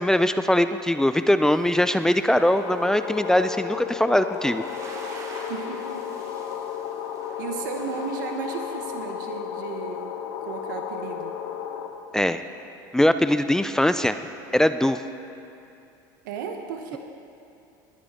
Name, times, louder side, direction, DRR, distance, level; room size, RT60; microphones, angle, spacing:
voice 1, 0.0-4.6 12.1-12.4 12.9-14.2 14.5-15.0, left 1 dB, 5° left, 10 dB, 0.4 m, -21 dB
sound 1, 1.4-8.7, right 2 dB, 30° right, 2.5 m, -46 dB
sound 2, 2.4-11.9, left 9 dB, 80° left, 1.0 m, -34 dB
voice 2, 5.1-6.7 7.4-10.1 10.4-11.4 16.2-17.0, right 6 dB, 85° right, 4 dB, 0.9 m, -35 dB
20.0 x 9.9 x 3.6 m, 2.7 s
supercardioid pair, 95°, 10 cm